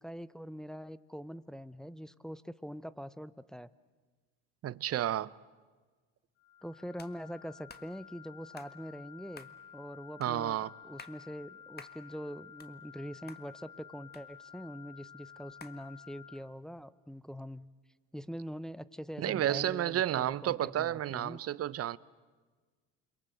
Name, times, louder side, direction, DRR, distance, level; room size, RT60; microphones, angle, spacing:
voice 1, 0.0-3.7 6.6-10.6 10.8-17.7 18.1-21.4, equal, ahead, 0.7 m, -44 dB
voice 2, 4.6-5.3 10.2-10.7 19.2-22.0, right 12 dB, 45° right, 0.8 m, -31 dB
sound 1, 6.4-16.3, left 8 dB, 85° left, 1.3 m, -53 dB
sound 2, 7.0-7.1 7.7-7.9 8.6-8.7 9.3-9.6 10.2-10.3 10.8-11.2 11.8-12.0 12.4-13.0 13.3-13.4 14.1-14.7 15.6-15.8, left 5 dB, 30° left, 1.6 m, -51 dB
28.5 x 22.5 x 7.9 m
supercardioid pair, 80°, 33 cm